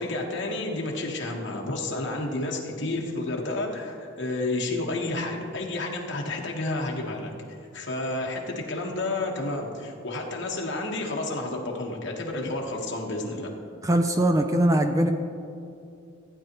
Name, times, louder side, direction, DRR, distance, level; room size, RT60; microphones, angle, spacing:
voice 1, 0.0-7.3 7.7-13.5, left 2 dB, 60° left, -1 dB, 1.3 m, -30 dB
voice 2, 13.8-15.1, right 1 dB, 15° right, 6 dB, 0.4 m, -21 dB
15.5 x 9.2 x 3.0 m, 2.5 s
head